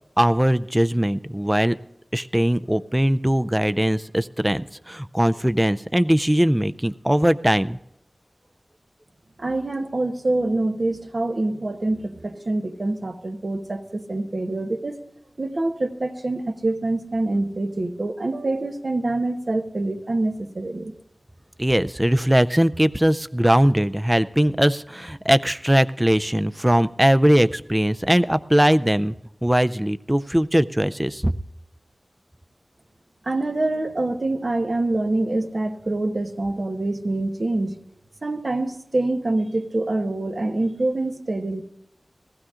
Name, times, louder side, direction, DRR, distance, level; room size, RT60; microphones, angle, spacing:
voice 1, 0.2-1.8 2.1-7.8 21.6-29.1 29.4-31.3, equal, 15° right, 13 dB, 0.4 m, -20 dB
voice 2, 9.4-15.0 15.4-20.9 33.3-37.8 38.2-41.6, right 2 dB, 60° right, 5 dB, 0.9 m, -25 dB
20.5 x 15.5 x 2.5 m, 0.81 s
wide cardioid pair, 55°, 0 cm